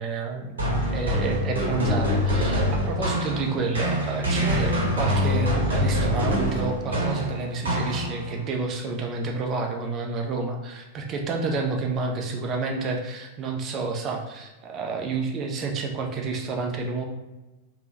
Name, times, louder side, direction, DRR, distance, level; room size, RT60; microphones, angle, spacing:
voice 1, 0.0-17.0, right 3 dB, 30° right, 2 dB, 0.5 m, -29 dB
sound 1, 0.6-8.4, equal, 70° right, 0.9 m, -25 dB
3.4 x 2.2 x 2.8 m, 1.1 s
figure-of-eight pair, 90°, 0 cm